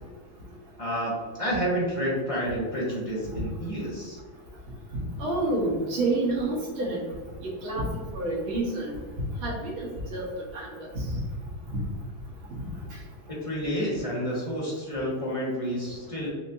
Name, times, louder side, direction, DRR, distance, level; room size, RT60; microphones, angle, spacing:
voice 1, 0.8-4.2 13.3-16.3, equal, 25° left, -6 dB, 0.9 m, -29 dB
voice 2, 4.9-7.0 7.4-7.8 8.1-9.0 9.4-10.3 10.5-11.0 11.7-11.8, right 2 dB, 90° right, -5 dB, 2.1 m, -29 dB
5.9 x 2.7 x 2.7 m, 1.5 s
omnidirectional pair, 2.2 m